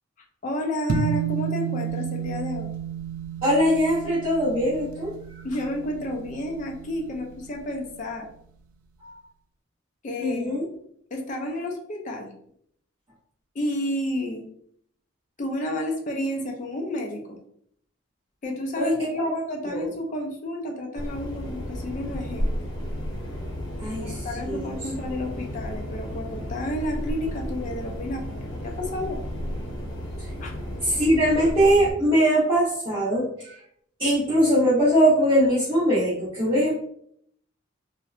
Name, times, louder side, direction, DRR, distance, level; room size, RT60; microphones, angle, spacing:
voice 1, 0.4-2.7 5.4-8.3 10.0-10.7 11.1-12.3 13.5-14.5 15.4-17.4 18.4-22.5 24.0-29.3 30.4-30.5, left 1 dB, 35° left, 1 dB, 0.3 m, -31 dB
sound 1, 0.9-7.5, right 6 dB, 85° right, 0.3 m, -32 dB
voice 2, 3.4-5.1 9.0-9.1 10.2-10.6 18.8-19.3 19.6-19.9 23.8-24.8 30.8-33.6 34.0-36.7, equal, 25° right, -11 dB, 0.7 m, -21 dB
sound 2, 20.9-31.9, equal, 65° left, 0.8 m, -33 dB
2.7 x 2.1 x 2.3 m, 0.67 s
head